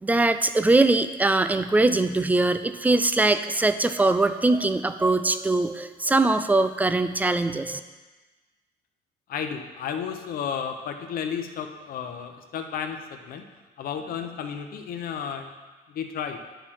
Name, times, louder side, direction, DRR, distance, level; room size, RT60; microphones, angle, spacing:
voice 1, 0.0-7.8, right 2 dB, 10° right, 10 dB, 0.4 m, -22 dB
voice 2, 9.3-13.4 13.8-15.5 15.9-16.4, left 7 dB, 60° left, 6 dB, 0.8 m, -32 dB
10.0 x 4.6 x 4.3 m, 1.2 s
cardioid pair, 110°, 17 cm